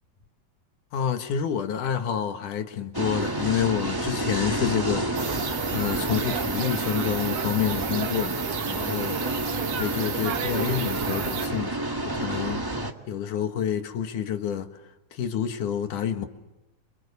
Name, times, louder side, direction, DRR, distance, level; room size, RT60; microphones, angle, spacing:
voice 1, 0.9-5.3 5.7-8.4 8.7-9.2 9.8-11.8 12.1-12.6 13.1-14.7 15.1-16.3, left 8 dB, 80° left, 3.2 m, -28 dB
sound 1, 2.9-12.9, right 1 dB, 20° right, 0.6 m, -30 dB
sound 2, 5.2-11.5, right 8 dB, 60° right, 2.2 m, -32 dB
29.0 x 27.0 x 7.0 m
omnidirectional pair, 3.6 m